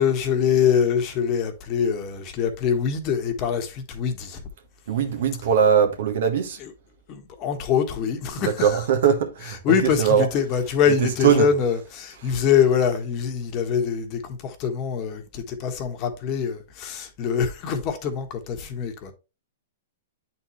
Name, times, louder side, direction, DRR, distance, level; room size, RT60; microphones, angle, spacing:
voice 1, 0.0-4.4 6.6-6.7 7.1-8.8 9.6-19.1, left 7 dB, 40° left, 1.4 m, -24 dB
voice 2, 4.9-6.6 8.4-10.3 10.9-11.5 12.2-12.3, right 7 dB, 65° right, 1.4 m, -21 dB
8.9 x 4.2 x 3.1 m
hypercardioid pair, 125°, 0 cm